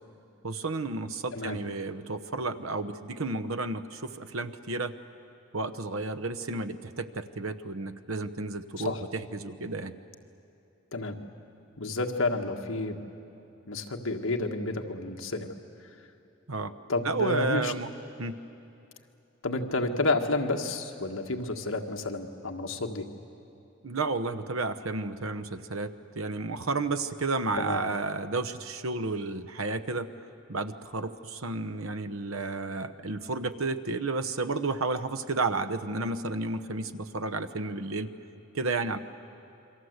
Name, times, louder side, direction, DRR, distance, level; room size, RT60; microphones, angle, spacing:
voice 1, 0.4-4.9 5.5-9.9 16.5-16.7 17.0-17.9 18.2-18.4 23.8-30.1 30.5-38.1 38.5-39.0, right 3 dB, 75° right, 11 dB, 1.0 m, -32 dB
voice 2, 11.8-13.0 13.7-15.5 16.9-17.7 19.4-23.0 27.6-27.8, left 2 dB, 70° left, 4 dB, 1.6 m, -30 dB
28.5 x 23.5 x 8.1 m, 2.8 s
head